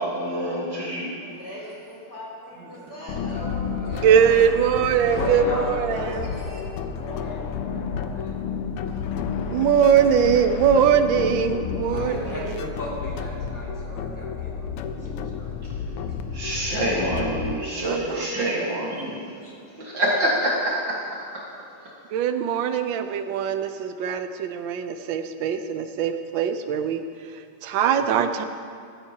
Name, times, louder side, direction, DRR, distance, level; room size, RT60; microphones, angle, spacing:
voice 1, 0.0-1.1 16.3-19.2 19.8-21.5, right 1 dB, 55° right, -4 dB, 2.2 m, -26 dB
voice 2, 1.2-4.3 5.9-6.8, left 1 dB, 30° left, -7 dB, 3.7 m, -41 dB
voice 3, 2.9-4.3 5.0-6.5 6.9-8.4 11.9-15.5 16.4-16.8 19.1-19.5, left 1 dB, 10° left, -6 dB, 2.2 m, -36 dB
sound 1, 3.1-17.5, left 6 dB, 85° left, 1.6 m, -31 dB
voice 4, 4.0-6.3 9.5-12.6 17.8-18.3 22.1-27.0 27.6-28.4, right 8 dB, 70° right, 8 dB, 1.2 m, -21 dB
14.5 x 14.0 x 2.8 m, 2.4 s
omnidirectional pair, 2.4 m